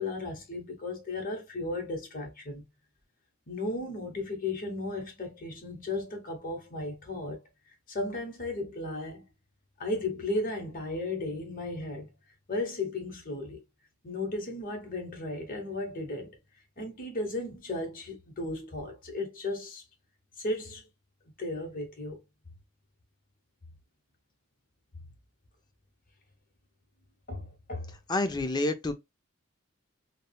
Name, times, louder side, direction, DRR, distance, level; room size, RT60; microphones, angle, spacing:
voice 1, 0.0-2.7 3.5-7.4 7.9-9.2 9.8-12.1 12.5-13.6 14.0-16.4 16.8-19.8 20.4-20.8 21.4-22.2 27.3-27.9, left 2 dB, 45° left, 1.0 m, -35 dB
voice 2, 28.1-28.9, left 2 dB, 20° left, 0.4 m, -28 dB
3.5 x 2.0 x 2.2 m
head